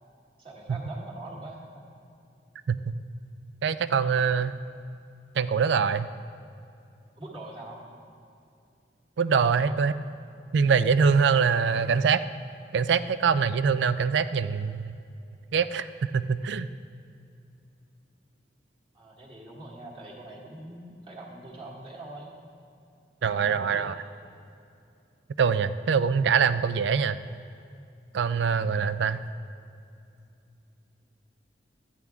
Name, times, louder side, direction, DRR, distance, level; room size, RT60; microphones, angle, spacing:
voice 1, 0.4-1.8 7.2-7.8 9.5-9.8 18.9-22.4 23.2-23.9, right 2 dB, 30° right, -4 dB, 1.7 m, -43 dB
voice 2, 3.6-4.6 5.4-6.1 9.2-9.9 10.5-12.2 12.7-14.9 15.5-15.9 16.1-16.7 23.2-23.9 25.4-27.2 28.1-29.2, right 6 dB, 75° right, 13 dB, 0.4 m, -24 dB
12.5 x 10.0 x 3.5 m, 2.6 s
head